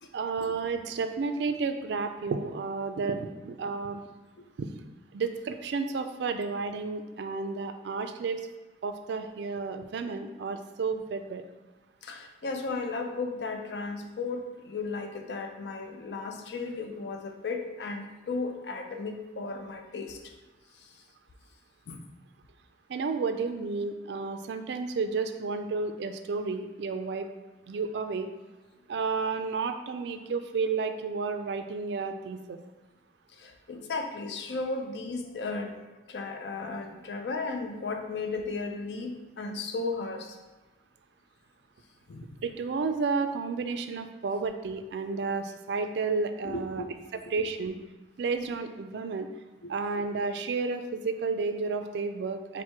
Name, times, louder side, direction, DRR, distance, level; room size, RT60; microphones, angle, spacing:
voice 1, 0.1-4.0 4.6-4.7 5.1-8.4 8.8-11.4 22.9-27.3 27.7-28.3 28.9-32.6 42.4-46.8 47.1-47.8 48.2-49.3 49.7-52.6, right 4 dB, 70° right, 8 dB, 0.3 m, -31 dB
voice 2, 12.0-20.2 20.8-20.9 21.9-22.0 33.4-40.4 42.1-42.4 46.4-46.9 47.2-47.3 49.6-49.7, left 3 dB, 70° left, 4 dB, 0.4 m, -35 dB
4.4 x 2.1 x 4.4 m, 1.2 s
head